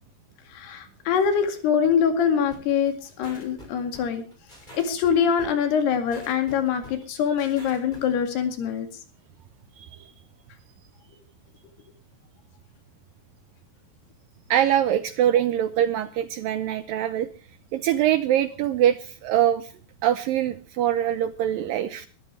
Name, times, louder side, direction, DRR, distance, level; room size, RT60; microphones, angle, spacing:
voice 1, 0.5-4.2 4.7-8.9, left 7 dB, 70° left, 7 dB, 4.1 m, -24 dB
sound 1, 2.5-8.1, equal, 10° left, 6.4 m, -46 dB
voice 2, 14.5-17.3 17.7-19.7 20.0-22.1, right 11 dB, 80° right, 12 dB, 2.1 m, -23 dB
22.5 x 13.0 x 3.3 m, 0.36 s
omnidirectional pair, 4.9 m